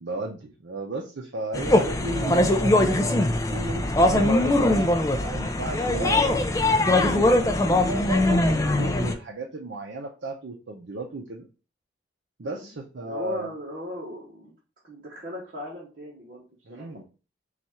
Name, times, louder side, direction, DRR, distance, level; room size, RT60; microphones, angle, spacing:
voice 1, 0.0-3.2 3.5-6.2 6.8-11.5 12.4-13.5 16.7-17.0, right 2 dB, 70° right, 0 dB, 0.6 m, -34 dB
sound 1, 1.5-9.1, left 1 dB, 15° left, 0.3 m, -21 dB
voice 2, 13.0-14.5 14.8-17.0, left 1 dB, 50° right, -6 dB, 1.1 m, -38 dB
4.1 x 2.4 x 4.3 m, 0.33 s
head